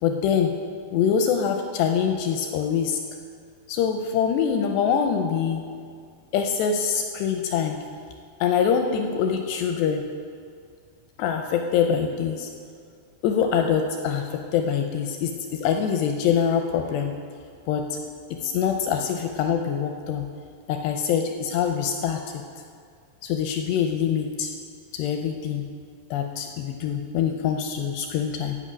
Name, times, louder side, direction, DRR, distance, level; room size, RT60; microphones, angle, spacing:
voice 1, 0.0-0.5 0.9-3.0 3.7-5.6 6.3-7.8 8.4-10.1 11.2-12.5 13.2-17.1 17.7-18.0 18.3-20.3 20.7-22.4 23.2-24.5 24.9-25.7 26.1-28.6, left 7 dB, 85° left, 5 dB, 2.4 m, -24 dB
12.5 x 5.3 x 8.7 m, 2.2 s
omnidirectional pair, 5.4 m